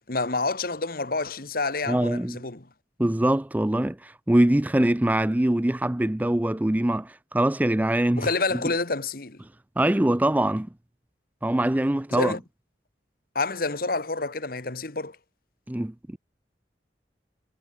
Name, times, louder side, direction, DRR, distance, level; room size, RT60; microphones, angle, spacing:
voice 1, 0.1-2.7 8.2-9.4 12.1-12.4 13.3-15.2, left 3 dB, 55° left, 1.7 m, -28 dB
voice 2, 1.9-2.4 3.0-8.3 9.8-10.7 11.4-12.3 15.7-16.2, right 1 dB, 10° right, 0.4 m, -23 dB
head